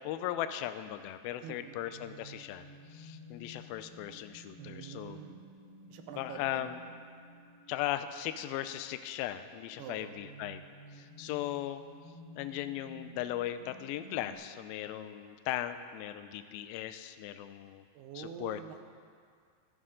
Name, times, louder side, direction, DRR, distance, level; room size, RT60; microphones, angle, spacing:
voice 1, 0.0-5.2 6.2-6.8 7.7-10.6 10.9-11.8 12.4-17.9 18.2-18.6, left 12 dB, 85° left, 10 dB, 2.2 m, -38 dB
voice 2, 1.4-1.8 4.6-5.4 5.9-6.7 9.8-10.1 17.9-18.8, right 8 dB, 80° right, 6 dB, 2.8 m, -46 dB
sound 1, 1.7-14.3, right 1 dB, 40° left, 4.4 m, -53 dB
14.5 x 12.5 x 3.8 m, 2.1 s
omnidirectional pair, 4.6 m